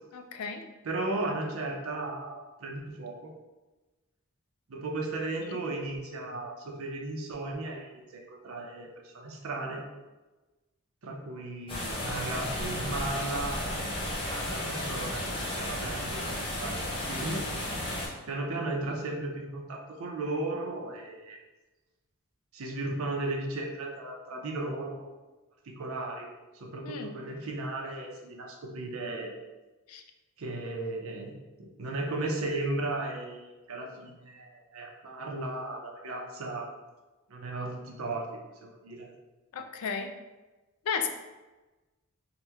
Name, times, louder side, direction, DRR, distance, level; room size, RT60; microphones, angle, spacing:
voice 1, 0.1-0.6 5.4-5.5 26.9-27.1 29.9-30.0 39.5-40.1 40.9-41.1, left 6 dB, 75° left, 6 dB, 0.3 m, -34 dB
voice 2, 0.8-3.3 4.7-9.8 11.0-13.8 14.2-16.3 16.6-16.8 17.1-17.4 18.3-21.4 22.5-25.2 25.6-26.3 26.5-29.3 30.4-31.3 31.6-36.7 37.3-38.3 38.6-39.1, right 2 dB, 65° right, 1 dB, 0.5 m, -35 dB
sound 1, 11.7-18.1, left 1 dB, 25° left, 0.7 m, -33 dB
2.9 x 2.1 x 3.4 m, 1.1 s
head